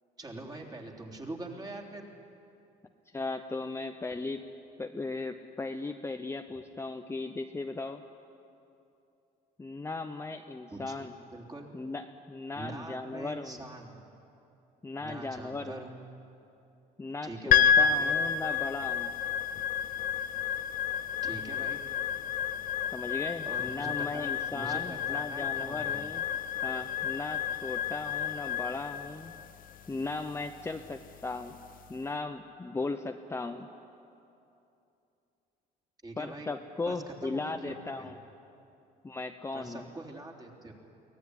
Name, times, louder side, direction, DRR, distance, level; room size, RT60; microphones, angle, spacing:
voice 1, 0.2-2.1 10.7-10.9 11.3-11.7 12.5-14.0 15.0-16.0 17.2-18.2 21.2-21.8 23.4-26.0 36.0-36.6 36.9-38.1 39.5-40.7, right 2 dB, 25° right, 1 dB, 3.4 m, -43 dB
voice 2, 3.1-4.4 4.8-8.0 9.6-11.1 11.7-13.6 14.8-15.9 17.0-19.1 22.9-26.2 26.6-29.3 29.9-31.6 31.9-33.7 36.2-38.2 39.0-39.8, left 3 dB, 15° left, 6 dB, 0.8 m, -37 dB
sound 1, 17.5-31.9, left 8 dB, 55° left, 1.0 m, -30 dB
23.5 x 17.5 x 9.9 m, 2.8 s
cardioid pair, 110°, 17 cm